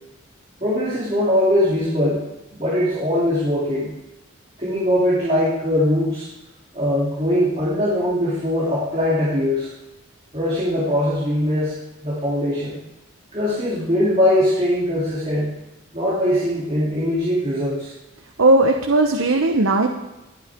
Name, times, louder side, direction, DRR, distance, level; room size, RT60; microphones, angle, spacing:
voice 1, 0.6-2.2 2.5-3.9 4.6-6.3 6.7-9.7 10.3-12.8 13.3-15.5 15.9-17.9, left 1 dB, 30° right, -8 dB, 3.1 m, -21 dB
voice 2, 18.4-19.9, right 2 dB, 80° right, 3 dB, 0.9 m, -17 dB
22.0 x 8.6 x 3.7 m, 0.98 s
head